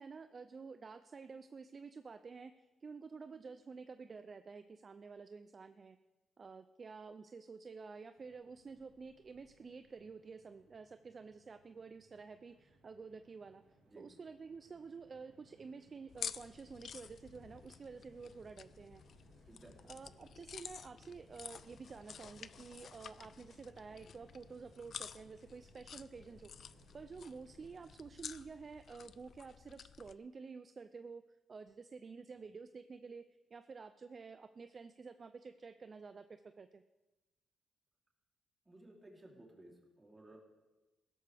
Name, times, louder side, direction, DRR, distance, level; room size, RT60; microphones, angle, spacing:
voice 1, 0.0-6.0 6.4-13.6 14.0-19.0 19.8-31.2 31.5-36.8, right 5 dB, 40° right, 10 dB, 0.5 m, -50 dB
Train, 8.2-28.1, right 2 dB, 85° right, 4.5 m, -67 dB
sound 1, 16.1-30.2, left 7 dB, 60° left, 0.4 m, -51 dB
voice 2, 19.5-20.1 38.6-40.4, right 1 dB, 20° right, -2 dB, 3.3 m, -58 dB
16.5 x 13.0 x 3.5 m, 1.1 s
cardioid pair, 90°, 0 cm